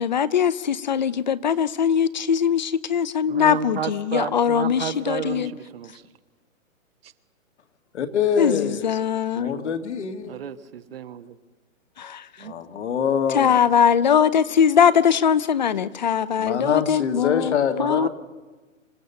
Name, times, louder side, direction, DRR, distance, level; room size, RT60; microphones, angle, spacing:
voice 1, 0.0-5.5 8.4-9.6 12.0-12.5 13.3-18.1, left 8 dB, 35° left, 18 dB, 0.6 m, -21 dB
voice 2, 3.3-6.0 7.0-7.1 9.4-9.7 10.2-11.4 12.4-12.6 17.7-18.1, right 8 dB, 45° right, 11 dB, 1.2 m, -32 dB
voice 3, 7.9-8.9 9.4-10.4 12.4-13.6 16.4-18.1, left 7 dB, 55° left, 7 dB, 2.0 m, -24 dB
27.0 x 16.0 x 6.9 m, 1.3 s
hypercardioid pair, 165°, 40 cm